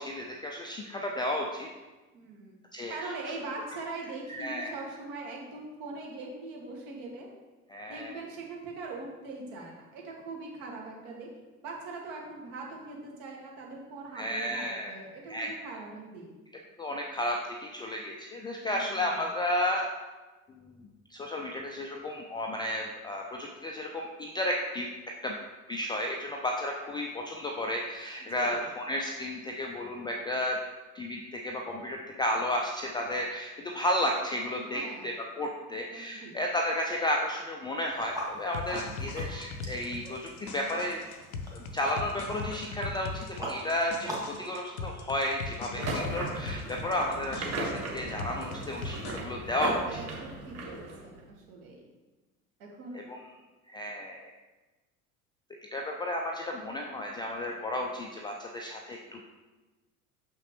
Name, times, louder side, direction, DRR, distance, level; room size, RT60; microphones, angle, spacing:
voice 1, 0.0-1.7 2.7-3.1 4.3-4.7 7.7-8.2 14.2-14.9 15.3-15.5 16.8-19.9 20.7-20.8 21.1-24.9 25.2-25.4 25.7-30.6 30.9-41.0 41.5-49.8 52.9-53.2 53.7-54.3 55.7-59.2, left 1 dB, 10° left, 0 dB, 0.3 m, -33 dB
voice 2, 2.1-2.6 2.9-7.3 7.9-11.3 11.6-16.3 18.6-19.2 28.2-28.6 34.6-35.1 35.7-36.4 49.9-51.9 52.6-53.1, right 3 dB, 55° right, -1 dB, 2.0 m, -42 dB
sound 1, 37.9-44.4, right 1 dB, 10° right, 1.8 m, -42 dB
sound 2, 38.5-49.2, left 4 dB, 75° left, 0.7 m, -40 dB
sound 3, 45.8-51.2, right 2 dB, 35° right, 1.5 m, -37 dB
6.8 x 5.7 x 3.1 m, 1.2 s
figure-of-eight pair, 75°, 44 cm